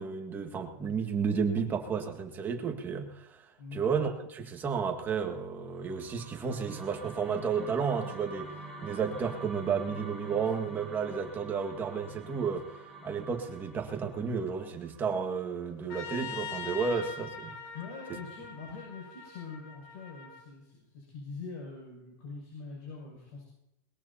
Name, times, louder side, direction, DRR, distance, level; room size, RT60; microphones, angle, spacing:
voice 1, 0.0-3.4 3.7-8.5 8.8-12.7 13.0-17.5, right 6 dB, 20° right, 3 dB, 1.8 m, -32 dB
voice 2, 3.6-4.0 17.7-23.4, left 4 dB, 60° left, -1 dB, 6.7 m, -44 dB
sound 1, 5.6-15.9, right 2 dB, 5° left, 5.0 m, -47 dB
Trumpet, 15.9-20.4, left 5 dB, 40° left, 2.3 m, -42 dB
21.5 x 21.0 x 2.9 m, 0.86 s
supercardioid pair, 160°, 10 cm